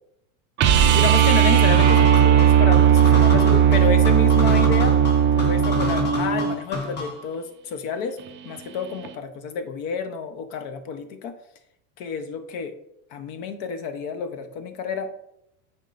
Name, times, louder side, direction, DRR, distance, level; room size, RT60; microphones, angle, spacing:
sound 1, 0.6-6.6 9.0-9.1, right 9 dB, 30° right, 0.3 m, -17 dB
voice 1, 0.9-5.0 5.4-8.2 8.4-11.3 12.0-12.7 13.1-15.2, left 6 dB, 55° left, 9 dB, 0.9 m, -30 dB
sound 2, 1.7-7.3, left 3 dB, 25° left, 1.2 m, -29 dB
8.9 x 4.5 x 2.6 m, 0.79 s
supercardioid pair, 125°, 44 cm